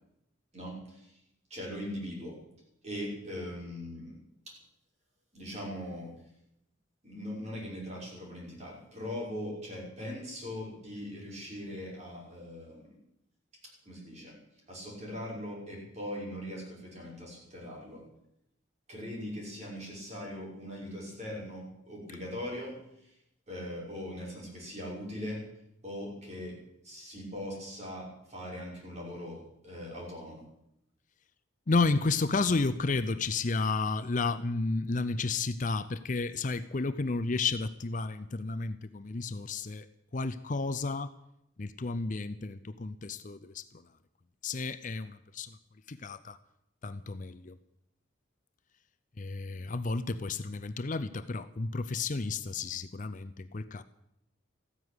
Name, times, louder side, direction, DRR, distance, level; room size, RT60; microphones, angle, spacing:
voice 1, 0.5-1.1 1.5-2.4 2.8-4.2 4.5-4.6 5.3-6.1 7.0-12.9 13.9-14.3 14.7-18.0 18.9-22.8 23.0-23.1 23.5-25.4 25.8-26.6 26.8-30.4, left 1 dB, 35° right, -3 dB, 6.0 m, -40 dB
voice 2, 31.7-39.9 40.1-41.1 41.6-43.9 44.4-45.6 45.9-46.4 46.8-47.6 49.2-53.8, left 3 dB, 40° left, 12 dB, 0.6 m, -32 dB
15.0 x 9.9 x 9.7 m, 0.81 s
head